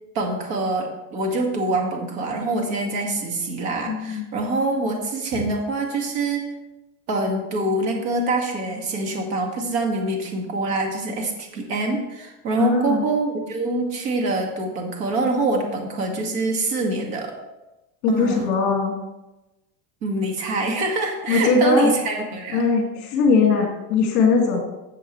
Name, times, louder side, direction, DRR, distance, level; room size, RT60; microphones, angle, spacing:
voice 1, 0.1-6.4 7.1-17.3 18.1-18.4 20.0-22.6, right 2 dB, 70° right, 2 dB, 2.3 m, -25 dB
voice 2, 3.9-4.3 5.3-5.4 12.6-13.1 18.0-19.0 21.3-21.9 22.5-24.6, left 4 dB, 35° left, 1 dB, 2.3 m, -20 dB
13.0 x 7.5 x 3.3 m, 1.0 s
supercardioid pair, 175°, 50 cm